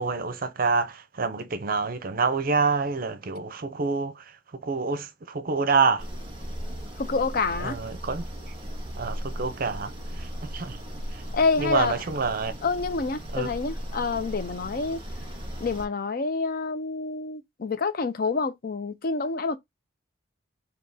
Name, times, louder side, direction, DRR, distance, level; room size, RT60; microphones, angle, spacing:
voice 1, 0.0-6.1 7.6-8.3 8.9-10.8 11.1-11.2 11.6-12.5 13.3-13.5, right 4 dB, 50° right, 0.6 m, -27 dB
sound 1, 6.0-15.9, equal, 30° right, 1.7 m, -37 dB
voice 2, 7.0-7.8 11.3-11.9 12.6-15.0 15.6-19.6, left 4 dB, 50° left, 0.5 m, -27 dB
3.5 x 2.9 x 4.0 m
head